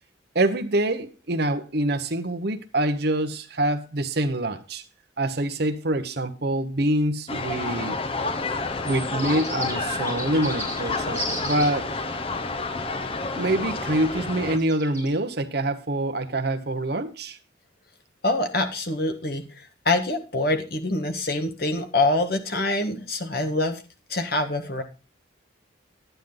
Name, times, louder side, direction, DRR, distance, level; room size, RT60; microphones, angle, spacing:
voice 1, 0.3-4.8 5.2-8.0 8.8-11.9 13.4-17.4, right 1 dB, 55° right, 1.0 m, -25 dB
sound 1, 7.3-14.6, left 3 dB, 30° left, 0.8 m, -29 dB
sound 2, 8.8-11.7 14.6-15.1, equal, 10° left, 4.2 m, -34 dB
voice 2, 18.2-23.8 24.1-24.8, left 2 dB, 50° left, 1.6 m, -25 dB
10.5 x 9.3 x 3.9 m
head